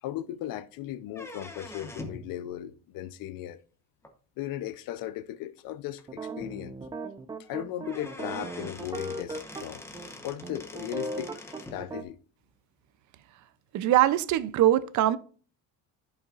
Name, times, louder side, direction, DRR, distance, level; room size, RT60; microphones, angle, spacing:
voice 1, 0.0-3.6 4.4-6.8 7.5-9.8 10.2-12.2, left 13 dB, 75° left, 0.7 m, -37 dB
sound 1, 1.1-2.3 4.0-4.1 5.1-5.2 5.6-5.7 6.0-6.1 7.4-7.5 7.8-11.8, left 1 dB, 5° left, 1.0 m, -44 dB
sound 2, 6.1-9.6 9.9-10.1 10.4-12.0, right 2 dB, 15° right, 0.4 m, -37 dB
voice 2, 13.7-15.2, right 13 dB, 55° right, 0.6 m, -22 dB
14.5 x 5.7 x 2.5 m
cardioid pair, 175°, 34 cm